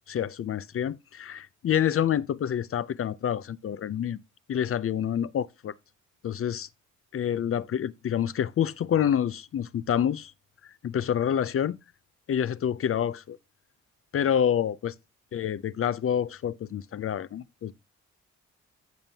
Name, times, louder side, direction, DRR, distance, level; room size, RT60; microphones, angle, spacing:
voice 1, 0.1-4.2 4.5-5.7 6.2-6.7 7.1-10.3 10.8-11.8 12.3-13.4 14.1-14.9 15.3-17.7, left 9 dB, 45° left, 0.5 m, -27 dB
14.5 x 5.3 x 2.8 m
cardioid pair, 95°, 30 cm